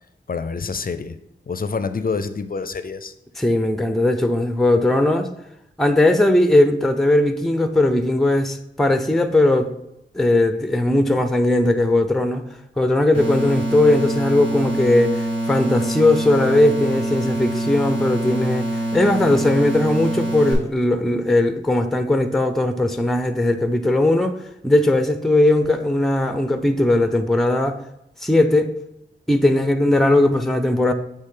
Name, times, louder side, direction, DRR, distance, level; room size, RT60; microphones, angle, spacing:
voice 1, 0.3-1.2 1.5-3.1, left 4 dB, 45° left, 0.5 m, -27 dB
voice 2, 3.4-5.3 5.8-9.7 10.1-12.4 12.8-24.4 24.6-27.8 28.2-28.7 29.3-30.9, left 1 dB, ahead, 0.5 m, -18 dB
sound 1, 13.1-20.5, right 1 dB, 75° right, 2.4 m, -25 dB
8.1 x 3.4 x 3.8 m
cardioid pair, 55°, 20 cm